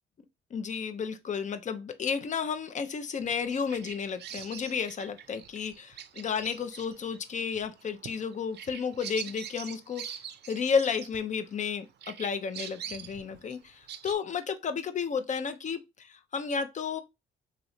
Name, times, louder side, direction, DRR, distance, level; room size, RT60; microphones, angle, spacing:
voice 1, 0.5-10.1 10.5-17.0, left 6 dB, 40° left, 0.5 m, -32 dB
Bird vocalization bird call bird song, 3.3-11.7 12.0-14.2, right 9 dB, 55° right, 0.4 m, -44 dB
3.0 x 2.8 x 2.6 m
cardioid pair, 90°, 20 cm